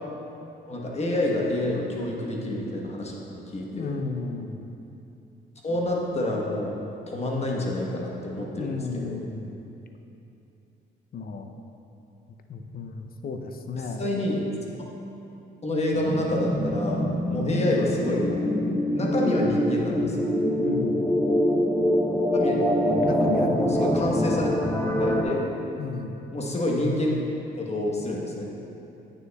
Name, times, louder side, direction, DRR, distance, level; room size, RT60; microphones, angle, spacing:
voice 1, 0.7-3.9 5.6-6.8 7.1-9.1 14.0-14.4 15.6-17.0 17.3-18.5 18.9-20.3 22.3-22.7 23.1-24.6 25.0-25.4 26.3-27.2 27.6-28.6, left 1 dB, 30° left, -2 dB, 1.1 m, -28 dB
voice 2, 3.7-4.7 8.5-9.6 11.1-11.5 12.3-14.2 20.6-21.0 23.0-23.9 25.8-26.2, left 4 dB, 50° left, 5 dB, 0.6 m, -34 dB
sound 1, 15.9-25.2, equal, 15° left, 0.7 m, -24 dB
9.0 x 6.8 x 2.3 m, 2.9 s
cardioid pair, 90°, 20 cm